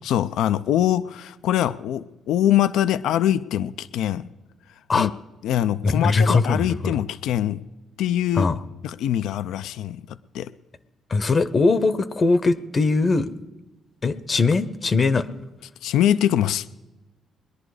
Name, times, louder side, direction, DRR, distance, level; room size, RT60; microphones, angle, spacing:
voice 1, 0.0-4.3 4.9-5.1 5.4-7.6 8.0-8.5 8.8-10.5 15.8-16.7, left 11 dB, 85° left, 14 dB, 0.4 m, -23 dB
voice 2, 5.8-6.9 8.4-8.6 11.1-13.3 14.0-15.3, left 3 dB, 40° left, 15 dB, 0.7 m, -20 dB
21.0 x 11.0 x 4.8 m, 1.1 s
cardioid pair, 90°, 0 cm